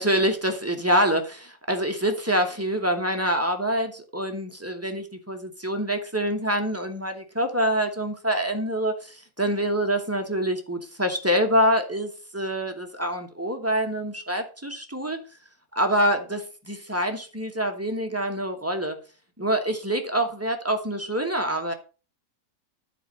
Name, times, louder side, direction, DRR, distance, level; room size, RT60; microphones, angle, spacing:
voice 1, 0.0-15.2 15.7-19.0 19.4-21.7, equal, 10° right, 5 dB, 0.8 m, -26 dB
10.0 x 4.6 x 5.3 m, 0.36 s
omnidirectional pair, 1.7 m